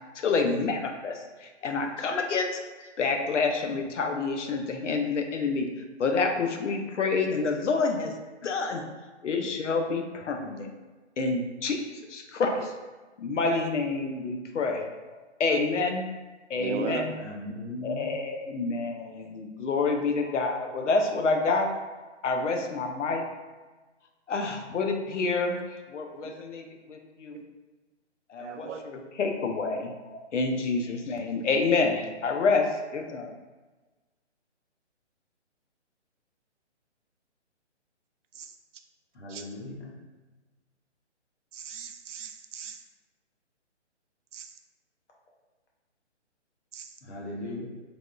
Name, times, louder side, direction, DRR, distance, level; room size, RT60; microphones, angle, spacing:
voice 1, 0.1-2.6 3.0-5.7 6.0-8.1 8.4-8.8 9.2-10.7 11.2-11.8 12.1-12.6 13.2-14.8 15.1-16.0 16.5-17.1 17.8-23.2 24.3-25.6 25.9-27.4 28.3-33.3, left 4 dB, 85° left, 4 dB, 0.6 m, -28 dB
voice 2, 3.2-3.5 6.3-6.4 8.8-8.9 9.4-9.5 11.2-11.4 12.5-12.6 13.4-13.7 15.5-15.9 16.6-17.1 22.5-22.6 24.4-24.5 26.1-26.4 27.3-27.4 28.4-29.1 38.4-38.5 39.3-39.4 41.5-42.8 44.3-44.5 46.7-46.9, right 6 dB, 85° right, 6 dB, 0.5 m, -36 dB
voice 3, 17.2-18.1 39.1-40.0 47.0-47.7, left 2 dB, 65° left, -3 dB, 0.9 m, -38 dB
3.4 x 2.2 x 2.4 m, 1.2 s
hypercardioid pair, 180°, 36 cm